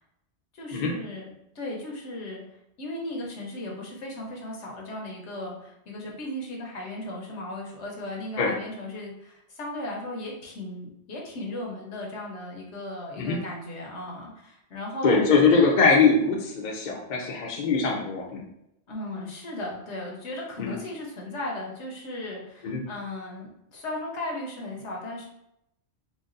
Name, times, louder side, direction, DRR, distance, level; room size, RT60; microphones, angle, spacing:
voice 1, 0.5-1.3 1.5-2.4 2.8-15.7 18.9-25.2, left 1 dB, 80° left, -1 dB, 1.1 m, -36 dB
voice 2, 15.0-18.5 20.6-20.8 22.6-22.8, left 4 dB, 50° left, -1 dB, 0.6 m, -22 dB
4.0 x 2.3 x 2.5 m, 0.79 s
omnidirectional pair, 1.2 m